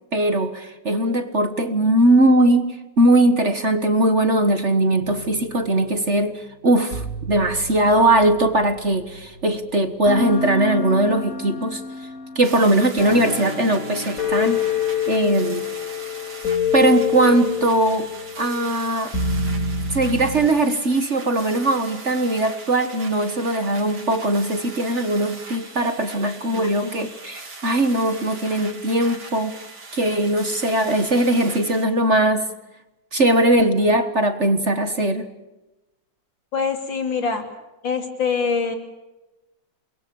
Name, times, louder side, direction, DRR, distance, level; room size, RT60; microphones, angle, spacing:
voice 1, 0.1-12.1 12.3-14.6 15.1-15.6 16.7-18.1 18.4-19.1 19.9-29.6 29.9-32.5 33.1-35.3, right 1 dB, 40° right, 9 dB, 1.7 m, -20 dB
sound 1, 5.0-6.2 6.9-9.5 10.1-20.5, left 6 dB, 45° left, 4.9 m, -28 dB
sound 2, 12.4-31.8, right 3 dB, 75° right, 4.6 m, -40 dB
voice 2, 26.5-27.1 36.5-37.4 37.8-38.7, left 5 dB, 70° left, 5 dB, 3.9 m, -25 dB
29.5 x 22.5 x 7.1 m, 1.0 s
omnidirectional pair, 2.1 m